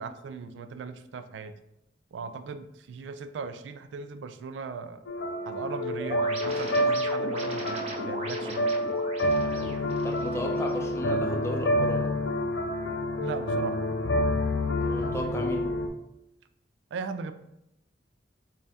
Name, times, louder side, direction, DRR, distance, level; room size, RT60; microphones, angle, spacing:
voice 1, 0.0-1.5 2.1-5.0 5.5-8.9 13.2-13.8 16.9-17.3, right 5 dB, 85° right, 10 dB, 0.3 m, -38 dB
sound 1, 5.1-15.9, left 1 dB, 90° left, 0.5 m, -28 dB
sound 2, 6.0-11.0, right 1 dB, 35° right, 0.7 m, -39 dB
voice 2, 9.4-12.2 14.8-15.8, equal, 15° left, 2 dB, 0.4 m, -35 dB
5.1 x 2.3 x 2.7 m, 0.82 s
head